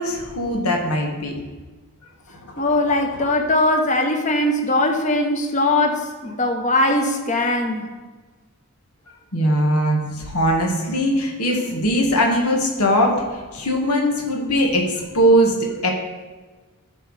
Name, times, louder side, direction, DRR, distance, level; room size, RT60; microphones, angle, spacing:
voice 1, 0.0-1.3 2.4-2.7 9.3-13.2 13.5-15.9, equal, 85° left, 1 dB, 1.9 m, -20 dB
voice 2, 2.6-7.8, left 2 dB, 35° left, 4 dB, 1.1 m, -20 dB
13.5 x 4.6 x 5.0 m, 1.3 s
head